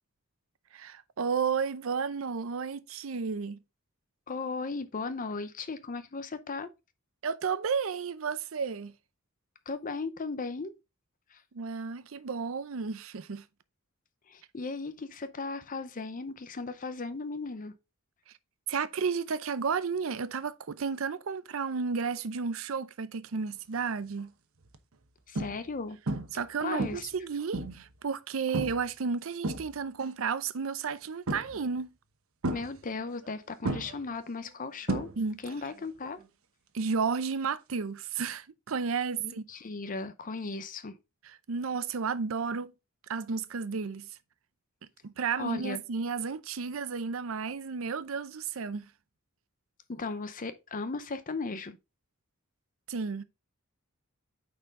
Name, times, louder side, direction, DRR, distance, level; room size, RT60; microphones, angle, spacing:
voice 1, 0.7-3.6 7.2-8.9 11.5-13.4 18.3-18.4 18.7-24.3 26.3-31.9 35.2-35.4 36.7-39.4 41.2-42.7 43.1-44.1 45.0-48.9 52.9-53.2, right 5 dB, 70° right, 0.5 m, -32 dB
voice 2, 4.3-6.7 9.7-10.7 11.3-11.4 14.3-17.7 25.3-26.0 26.6-27.1 32.5-35.1 35.4-36.2 39.2-40.9 45.4-45.8 49.9-51.8, left 4 dB, 40° left, 0.6 m, -36 dB
sound 1, 23.7-24.0 24.6-24.8 25.4-25.8 26.1-26.5 26.8-27.9 28.5-28.9 29.2-30.1 31.3-31.8 32.4-33.3 33.6-35.5 35.8-36.2 38.3-38.4, right 2 dB, 90° right, 1.0 m, -34 dB
9.0 x 4.4 x 3.6 m
head